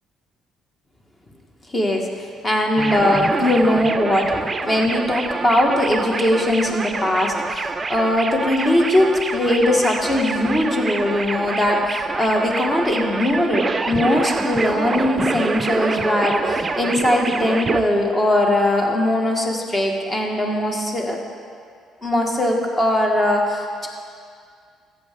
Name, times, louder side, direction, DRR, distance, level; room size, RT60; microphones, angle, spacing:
voice 1, 1.7-2.1 2.4-4.4 4.6-21.2 22.0-23.9, left 1 dB, 25° left, 1 dB, 1.8 m, -20 dB
sound 1, 2.8-17.8, right 3 dB, 30° right, 0.5 m, -26 dB
14.0 x 8.0 x 3.7 m, 2.2 s
hypercardioid pair, 60°, 0 cm